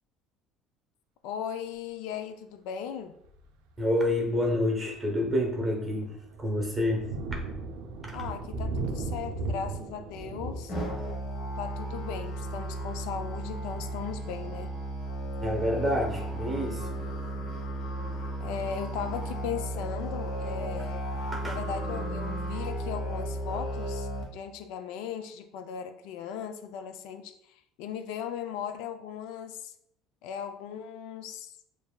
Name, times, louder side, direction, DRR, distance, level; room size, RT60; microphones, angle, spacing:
voice 1, 1.2-3.2 8.1-10.7 11.6-14.7 18.4-21.1 21.4-29.7 30.2-31.6, left 8 dB, 75° left, 8 dB, 0.3 m, -37 dB
Thunder, 3.2-3.6 4.1-4.3 4.7-15.3, right 3 dB, 85° right, 0.5 m, -38 dB
voice 2, 3.8-6.1 6.4-7.1 8.1-8.2 15.4-16.9 21.3-21.6, left 1 dB, 10° right, 0 dB, 0.9 m, -28 dB
Musical instrument, 10.7-24.2, right 1 dB, 50° left, 1.2 m, -34 dB
7.0 x 2.6 x 2.2 m, 0.73 s
cardioid pair, 165°, 0 cm